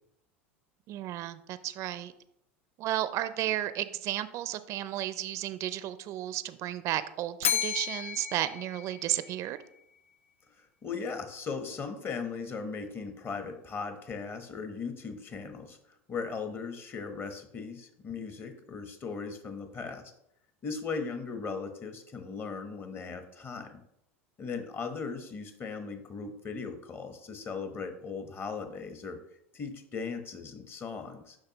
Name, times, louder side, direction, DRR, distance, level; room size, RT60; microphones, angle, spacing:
voice 1, 0.9-2.1 2.8-9.6, right 13 dB, 45° right, 14 dB, 0.4 m, -33 dB
Bell, 7.4-9.6, left 9 dB, 85° left, 0.3 m, -33 dB
voice 2, 10.6-20.1 20.6-23.8 24.4-29.2 29.5-31.4, left 5 dB, 30° left, 7 dB, 1.1 m, -38 dB
6.5 x 5.6 x 3.0 m, 0.77 s
hypercardioid pair, 90°, 7 cm